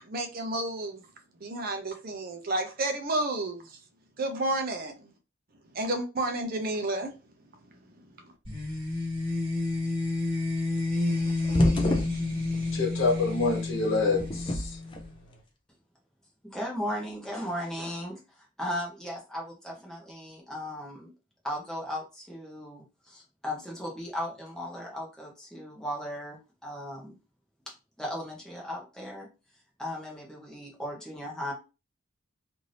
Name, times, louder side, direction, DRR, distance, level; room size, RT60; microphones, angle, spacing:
voice 1, 0.1-1.0 1.4-3.6 4.2-5.0 5.7-7.1, right 2 dB, 45° right, 0.5 m, -30 dB
sound 1, 8.4-15.1, left 2 dB, 25° right, 1.5 m, -30 dB
sound 2, 10.8-12.7 14.0-15.1, left 1 dB, 25° left, 0.4 m, -29 dB
voice 2, 12.7-14.8, left 3 dB, 70° left, 1.1 m, -27 dB
voice 3, 16.4-21.1 21.4-27.1 27.7-29.3 29.8-31.5, equal, 5° left, 0.9 m, -37 dB
2.7 x 2.6 x 3.2 m
head